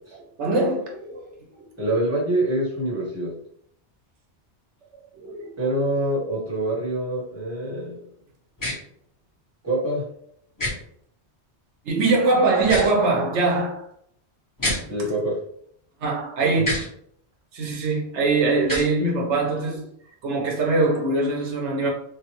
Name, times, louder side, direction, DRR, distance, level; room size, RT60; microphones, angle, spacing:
voice 1, 0.4-1.3 4.9-5.5 11.8-13.9 16.0-16.7 17.5-19.9 20.2-21.9, right 3 dB, 85° right, 1.0 m, -22 dB
voice 2, 1.8-3.3 5.6-8.0 9.6-10.0 14.9-15.4 16.4-16.6, right 1 dB, 15° right, 1.2 m, -25 dB
sound 1, 8.6-8.7 10.6-10.7 12.6-12.9 14.6-14.8 16.6-16.9 18.6-18.9, left 1 dB, 20° left, 1.2 m, -26 dB
3.1 x 2.3 x 2.9 m
omnidirectional pair, 1.1 m